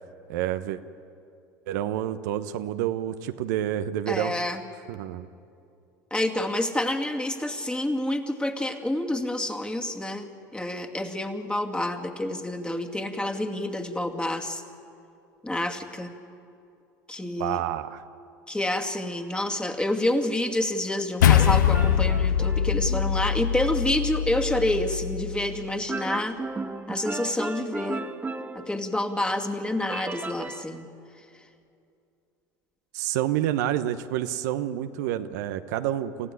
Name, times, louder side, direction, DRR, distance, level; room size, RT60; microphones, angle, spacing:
voice 1, 0.3-0.8 1.7-4.3 4.9-5.3 17.4-18.0 32.9-36.3, right 12 dB, 70° right, 9 dB, 1.0 m, -28 dB
voice 2, 4.1-4.6 6.1-14.6 15.4-16.1 17.1-17.6 18.5-26.4 26.9-28.0 28.5-30.9, left 1 dB, 10° left, 5 dB, 2.3 m, -28 dB
sound 1, 21.2-25.8, left 9 dB, 80° left, 0.5 m, -23 dB
sound 2, 21.3-23.2 25.9-29.2 29.9-30.6, right 3 dB, 15° right, 1.3 m, -35 dB
28.5 x 15.0 x 10.0 m, 2.6 s
hypercardioid pair, 75°, 10 cm